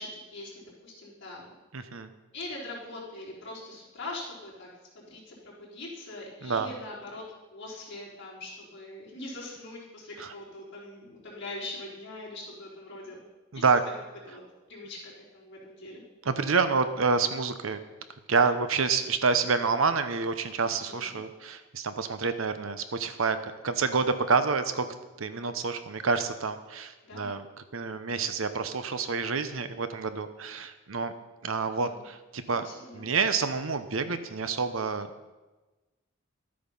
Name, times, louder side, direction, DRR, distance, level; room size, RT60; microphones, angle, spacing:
voice 1, 0.0-1.5 2.3-4.7 4.9-7.2 7.5-13.2 13.5-13.6 14.3-14.4 14.7-16.0 20.8-21.2 27.0-27.3 31.6-32.0 32.5-33.1, left 2 dB, 55° left, -5 dB, 3.9 m, -42 dB
voice 2, 1.7-2.1 6.4-6.7 10.2-10.3 13.5-13.8 16.2-17.8 18.3-24.9 25.2-27.5 27.7-31.1 31.4-32.7 32.9-35.1, right 4 dB, 75° right, 10 dB, 0.8 m, -28 dB
12.5 x 8.6 x 5.5 m, 1.2 s
head